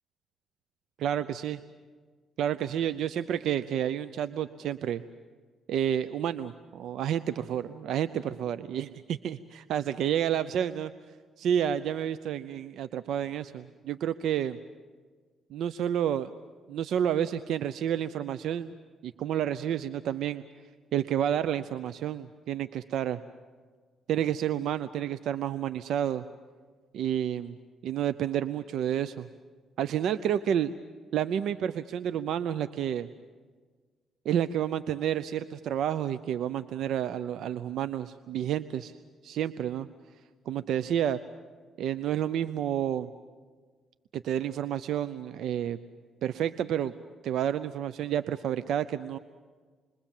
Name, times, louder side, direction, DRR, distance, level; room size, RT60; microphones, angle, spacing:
voice 1, 1.0-1.6 2.4-5.0 5.7-10.9 11.4-14.6 15.5-16.3 16.7-18.7 19.0-20.4 20.9-23.2 24.1-26.2 26.9-27.5 27.8-29.3 29.8-30.7 31.1-33.1 34.2-38.9 39.2-39.9 40.5-41.2 41.8-43.1 44.1-45.8 46.2-46.9 47.2-49.2, right 10 dB, 75° right, 13 dB, 0.6 m, -30 dB
28.5 x 22.0 x 7.3 m, 1.5 s
cardioid pair, 90°, 0 cm